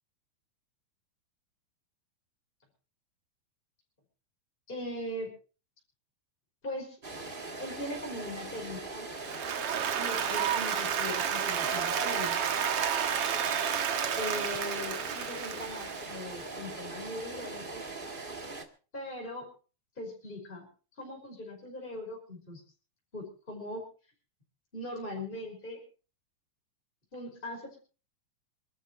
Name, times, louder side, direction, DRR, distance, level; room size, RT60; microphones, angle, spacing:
voice 1, 4.7-5.3 6.6-7.0 7.6-9.1 9.9-12.4 14.2-17.8 18.9-19.5 20.0-20.7 21.0-22.6 23.1-23.8 24.7-25.8 27.1-27.8, left 1 dB, 15° left, 0 dB, 5.5 m, -40 dB
sound 1, 7.0-18.6, right 3 dB, 40° right, 0.7 m, -41 dB
Applause, 9.2-16.4, right 8 dB, 60° right, 1.8 m, -31 dB
27.5 x 12.5 x 3.2 m, 0.37 s
omnidirectional pair, 4.3 m